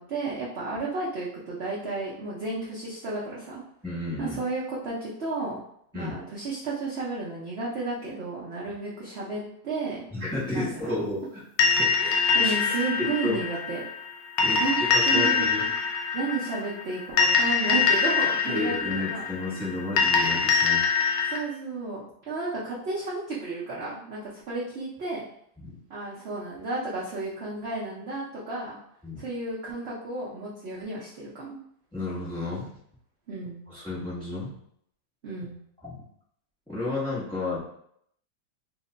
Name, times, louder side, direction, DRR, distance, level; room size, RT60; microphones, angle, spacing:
voice 1, 0.0-3.6 4.2-5.6 5.9-10.0 10.5-11.0 12.0-13.8 14.6-15.4 16.1-19.3 21.3-25.2 25.9-28.8 29.2-31.6 33.3-33.6 35.2-35.6, right 3 dB, 80° right, -6 dB, 0.5 m, -32 dB
voice 2, 3.8-4.4 5.9-6.2 10.1-11.4 11.8-11.9 12.4-12.6 13.0-13.4 14.4-15.7 18.5-20.9 25.6-25.8 29.0-29.3 31.9-32.7 33.7-34.5 35.8-36.0 36.7-37.6, left 2 dB, 5° left, -7 dB, 0.4 m, -32 dB
sound 1, 11.6-21.4, left 5 dB, 80° left, 1.2 m, -24 dB
3.1 x 2.2 x 3.7 m, 0.69 s
omnidirectional pair, 2.0 m